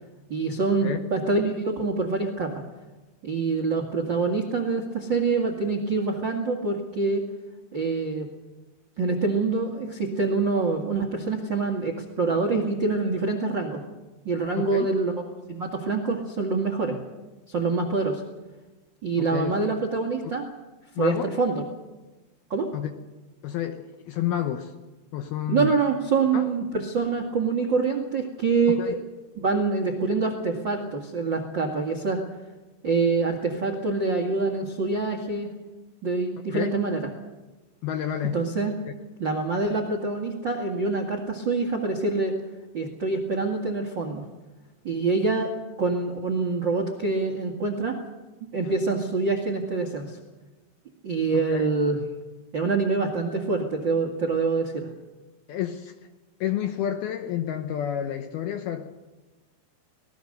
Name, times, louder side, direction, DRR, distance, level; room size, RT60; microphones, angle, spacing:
voice 1, 0.3-2.5 3.2-7.2 7.7-8.3 9.0-13.8 14.2-15.1 15.5-17.0 17.5-18.2 19.0-20.5 21.0-21.6 22.5-22.7 25.5-29.0 29.3-32.2 32.8-35.5 36.0-37.1 38.3-38.7 39.2-42.3 42.7-44.2 44.8-45.5 45.8-48.0 48.5-50.2 51.0-52.0 52.5-54.9, right 4 dB, 55° right, 5 dB, 1.2 m, -25 dB
voice 2, 14.6-14.9 19.2-19.5 21.0-21.3 22.7-22.9 23.4-24.7 25.1-25.7 26.3-26.5 28.7-28.9 36.5-36.8 37.8-38.4 48.6-48.7 51.3-51.7 55.5-55.9 56.4-59.0, left 10 dB, 75° left, 7 dB, 2.4 m, -29 dB
25.5 x 19.0 x 6.6 m, 1.2 s
omnidirectional pair, 5.4 m